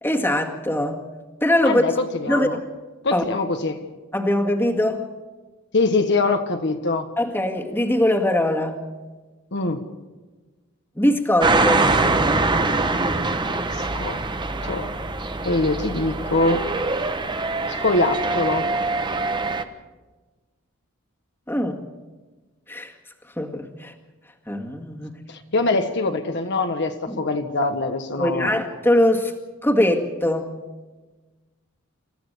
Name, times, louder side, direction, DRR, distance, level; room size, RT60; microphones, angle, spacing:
voice 1, 0.0-1.0 1.4-2.0 2.3-2.6 3.1-3.2 4.1-5.0 7.2-8.8 11.0-11.9 21.5-21.8 22.7-22.9 23.4-23.9 24.5-25.2 27.1-27.2 28.2-29.3 29.6-30.5, left 1 dB, 10° left, 2 dB, 2.0 m, -21 dB
voice 2, 1.6-2.6 3.0-3.8 5.7-7.1 9.5-9.9 13.7-14.2 14.6-14.9 15.4-16.7 17.7-18.7 25.3-28.6, left 2 dB, 55° left, 6 dB, 1.4 m, -23 dB
sound 1, 11.4-19.6, right 3 dB, 20° right, 1.1 m, -23 dB
28.0 x 14.5 x 6.8 m, 1.3 s
head